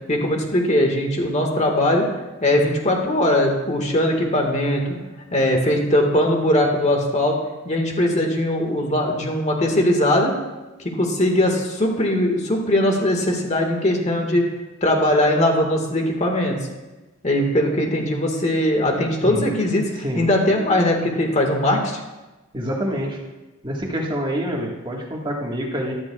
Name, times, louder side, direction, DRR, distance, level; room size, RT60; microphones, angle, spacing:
voice 1, 0.1-2.1 2.4-5.0 5.3-7.4 7.6-10.3 10.8-14.5 14.8-16.5 17.2-22.0, left 1 dB, 35° left, 2 dB, 1.7 m, -20 dB
voice 2, 22.5-23.2 23.6-25.9, equal, 25° right, -1 dB, 1.7 m, -26 dB
13.0 x 13.0 x 2.4 m, 1.1 s
head